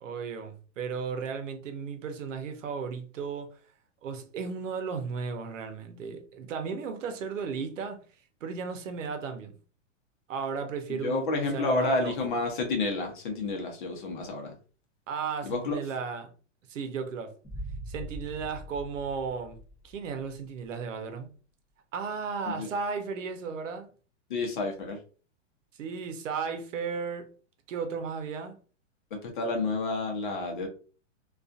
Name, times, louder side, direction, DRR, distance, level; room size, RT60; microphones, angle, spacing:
voice 1, 0.0-3.6 4.0-8.0 8.4-9.5 10.3-12.2 15.1-16.3 16.7-17.3 17.9-19.6 19.8-21.3 21.9-23.9 25.8-27.3 27.7-28.6, right 5 dB, 85° right, 0.7 m, -35 dB
voice 2, 10.9-14.5 15.4-15.8 22.5-22.7 24.3-25.0 29.1-30.7, left 2 dB, 40° left, 0.7 m, -30 dB
sound 1, 17.4-20.4, right 1 dB, 5° left, 0.6 m, -42 dB
2.6 x 2.4 x 2.4 m
supercardioid pair, 180°, 37 cm